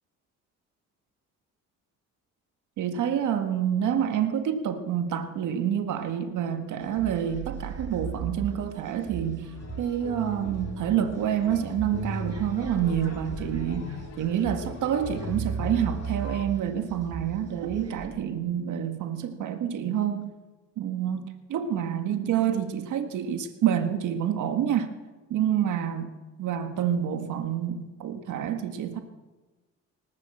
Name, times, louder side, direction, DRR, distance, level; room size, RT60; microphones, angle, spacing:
voice 1, 2.8-9.5 9.8-20.3 20.8-24.9 25.3-26.1 26.4-29.0, right 9 dB, 80° right, 7 dB, 1.8 m, -28 dB
sound 1, 6.8-18.1, right 6 dB, 55° right, 5.1 m, -38 dB
sound 2, 9.4-16.4, left 3 dB, 60° left, 2.3 m, -40 dB
20.0 x 19.0 x 7.8 m, 1.2 s
cardioid pair, 90°, 30 cm